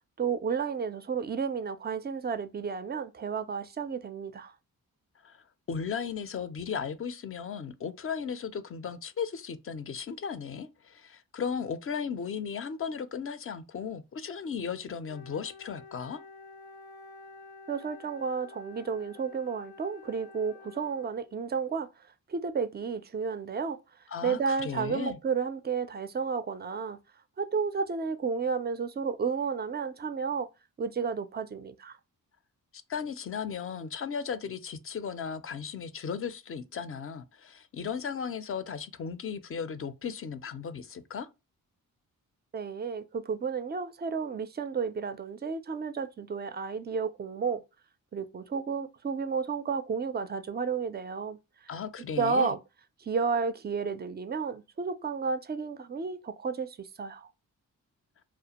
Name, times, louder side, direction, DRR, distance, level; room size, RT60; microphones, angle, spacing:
voice 1, 0.2-4.5 17.7-21.9 22.3-23.8 24.2-27.0 27.4-30.5 30.8-32.0 42.5-47.6 48.1-51.7 52.2-52.6 53.0-57.3, right 5 dB, 30° right, 0.3 m, -32 dB
voice 2, 5.2-16.2 24.1-25.2 32.7-41.3 51.7-52.5, left 6 dB, 40° left, 0.4 m, -36 dB
Wind instrument woodwind instrument, 15.1-21.4, left 4 dB, 80° left, 0.6 m, -50 dB
2.4 x 2.1 x 2.8 m
cardioid pair, 60°, 37 cm